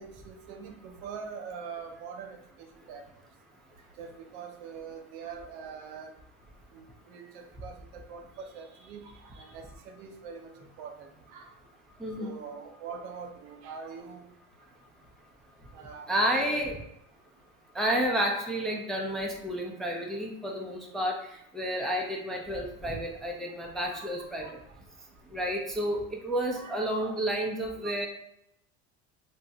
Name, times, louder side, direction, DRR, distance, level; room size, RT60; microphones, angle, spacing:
voice 1, 0.0-3.0 4.0-6.1 6.7-11.6 12.2-14.3 15.7-16.1 16.4-16.6 23.9-24.1 24.4-24.5 26.5-27.2 27.8-28.1, right 6 dB, 80° right, 3 dB, 0.8 m, -44 dB
voice 2, 12.0-12.3 16.1-16.8 17.7-24.6 25.3-28.1, equal, ahead, -1 dB, 0.4 m, -30 dB
2.6 x 2.3 x 4.0 m, 0.78 s
supercardioid pair, 115°, 34 cm